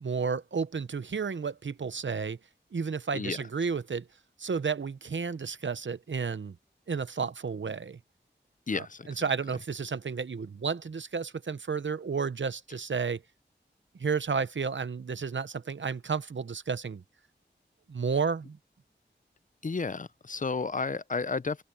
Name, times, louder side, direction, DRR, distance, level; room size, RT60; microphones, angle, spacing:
voice 1, 0.0-2.4 2.7-4.1 4.4-6.6 6.9-8.0 8.7-13.2 14.0-17.0 17.9-18.6, right 5 dB, 85° right, 0.8 m, -32 dB
voice 2, 8.7-9.1 19.6-21.6, left 4 dB, 45° left, 0.5 m, -32 dB
open air
wide cardioid pair, 50°, 19 cm